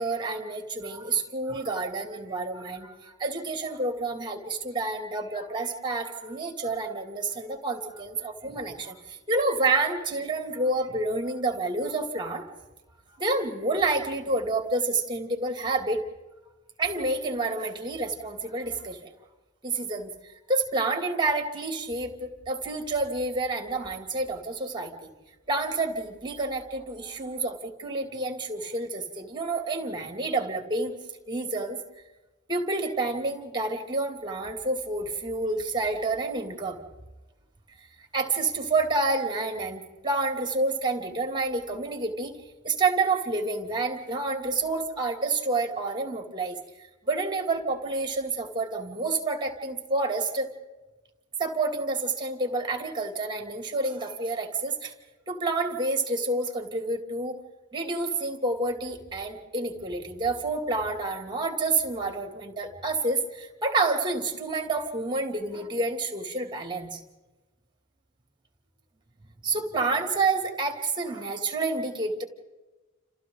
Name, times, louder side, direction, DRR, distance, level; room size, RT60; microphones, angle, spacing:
voice 1, 0.0-12.5 13.2-16.0 16.8-19.1 19.6-20.1 20.5-25.1 25.5-30.9 31.3-31.8 32.5-36.8 38.1-42.4 42.6-46.6 47.1-50.5 51.4-54.9 55.3-57.4 57.7-67.0 69.4-72.2, right 3 dB, 20° right, 4 dB, 2.6 m, -29 dB
30.0 x 28.5 x 3.9 m, 1.1 s
head